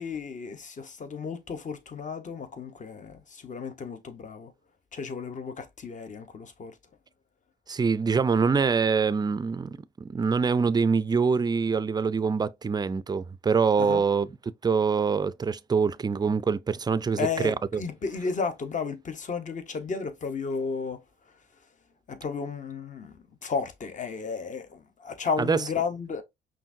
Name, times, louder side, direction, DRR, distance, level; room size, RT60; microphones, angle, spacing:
voice 1, 0.0-4.5 4.9-6.8 13.8-14.0 17.2-21.6 22.1-26.2, left 5 dB, 40° left, 0.9 m, -33 dB
voice 2, 7.7-14.3 14.6-17.8 25.4-25.6, right 5 dB, 20° right, 0.3 m, -25 dB
5.5 x 2.5 x 2.6 m
cardioid pair, 90°, 20 cm